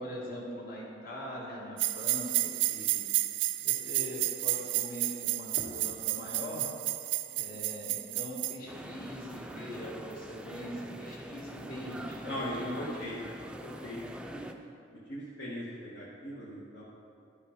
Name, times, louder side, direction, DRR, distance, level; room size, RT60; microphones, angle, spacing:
voice 1, 0.0-3.0 3.6-6.7 7.3-13.1, equal, 50° left, -4 dB, 1.8 m, -41 dB
sound 1, 1.8-8.6, right 16 dB, 70° right, 0.3 m, -31 dB
sound 2, 8.7-14.5, right 1 dB, 5° right, 0.4 m, -44 dB
voice 2, 12.3-13.1 13.6-14.0 14.3-14.4 15.1-16.8, equal, 65° left, -7 dB, 1.2 m, -39 dB
11.5 x 5.4 x 5.0 m, 2.6 s
head